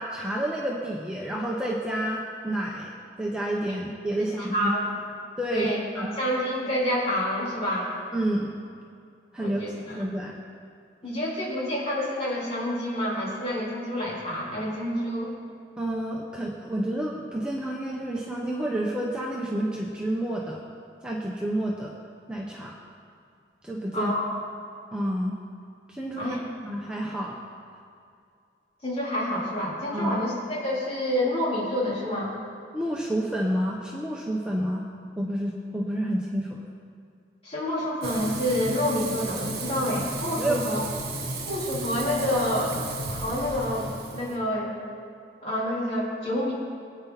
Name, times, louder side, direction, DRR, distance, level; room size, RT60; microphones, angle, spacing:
voice 1, 0.0-2.9 3.2-4.7 5.4-6.2 8.1-8.5 9.3-10.4 15.8-20.6 21.0-21.9 22.3-22.8 23.6-24.1 24.9-25.4 25.9-26.4 26.6-27.4 29.9-30.2 32.7-34.8 35.2-36.6 40.4-40.6, right 1 dB, 5° right, -3 dB, 1.0 m, -29 dB
voice 2, 4.2-4.9 5.5-7.9 9.4-10.0 11.0-15.3 23.9-24.4 26.2-26.4 28.8-32.3 37.4-40.8 41.5-42.8 43.1-44.7 45.4-46.5, left 1 dB, 35° left, -7 dB, 4.1 m, -28 dB
Frying (food), 38.0-44.4, right 2 dB, 65° right, 2.1 m, -34 dB
23.0 x 9.5 x 4.1 m, 2.4 s
head